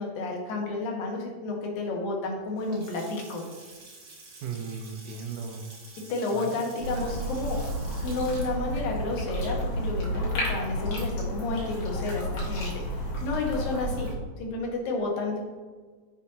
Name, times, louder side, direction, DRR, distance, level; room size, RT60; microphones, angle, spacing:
voice 1, 0.0-3.4 6.1-7.6 8.0-15.4, left 3 dB, 90° left, -1 dB, 3.3 m, -31 dB
Water tap faucet / Sink (filling or washing) / Splash splatter, 2.4-10.5, right 3 dB, 45° right, 2.2 m, -50 dB
voice 2, 4.4-5.7 6.3-6.6 6.9-7.2, right 6 dB, 75° right, 4 dB, 2.2 m, -37 dB
sound 1, 6.8-14.1, equal, 60° left, 3.3 m, -31 dB
10.5 x 7.2 x 2.8 m, 1.5 s
omnidirectional pair, 3.9 m